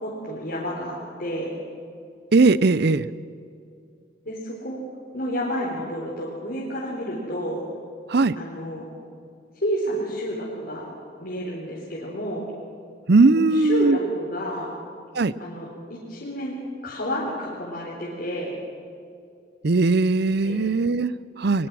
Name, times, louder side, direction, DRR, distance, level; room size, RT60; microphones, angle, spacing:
voice 1, 0.0-1.6 4.3-4.8 5.1-7.6 8.4-8.9 9.6-10.9 11.2-12.4 13.4-14.7 15.4-18.5 20.4-20.6, equal, 50° left, -5 dB, 4.0 m, -30 dB
voice 2, 2.3-3.1 8.1-8.4 13.1-14.0 15.1-15.3 19.6-21.7, right 3 dB, 55° right, 17 dB, 0.6 m, -19 dB
22.5 x 22.0 x 6.3 m, 2.4 s
head